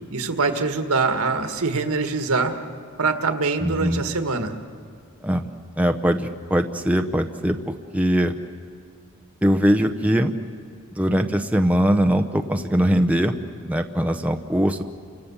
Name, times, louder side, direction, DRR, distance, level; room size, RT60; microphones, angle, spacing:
voice 1, 0.1-2.5 3.0-4.6, right 4 dB, 80° right, 7 dB, 1.8 m, -23 dB
voice 2, 3.6-4.0 5.2-5.5 5.8-8.3 9.4-10.3 10.9-14.8, equal, 5° right, 5 dB, 0.8 m, -21 dB
29.0 x 26.0 x 7.2 m, 2.2 s
head